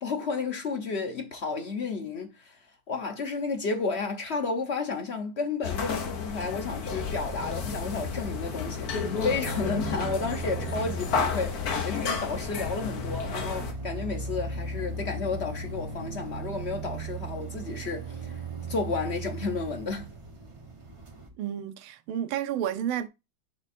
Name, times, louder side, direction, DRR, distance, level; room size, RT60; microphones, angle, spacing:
voice 1, 0.0-8.9 9.2-18.4 18.7-20.1, left 4 dB, 70° left, 0.6 m, -32 dB
sound 1, 5.6-13.7, left 6 dB, 55° left, 1.4 m, -32 dB
sound 2, 6.6-21.3, right 3 dB, 30° right, 0.5 m, -38 dB
voice 2, 21.4-23.1, right 10 dB, 85° right, 1.5 m, -31 dB
6.7 x 3.5 x 4.2 m
omnidirectional pair, 2.3 m